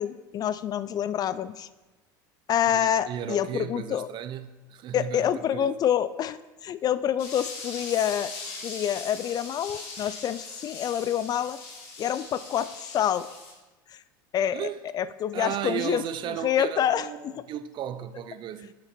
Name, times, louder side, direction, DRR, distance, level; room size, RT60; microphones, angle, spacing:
voice 1, 0.0-1.7 2.5-4.1 4.9-8.3 8.6-11.6 12.0-13.3 13.9-14.0 14.3-14.6 14.9-16.0 16.3-17.3, left 10 dB, 40° left, 0.4 m, -27 dB
voice 2, 2.7-5.7 14.5-14.8 15.3-18.7, right 10 dB, 45° right, 0.6 m, -35 dB
sound 1, 7.2-13.5, left 3 dB, 65° left, 2.2 m, -40 dB
7.6 x 7.2 x 4.4 m
supercardioid pair, 100°, 11 cm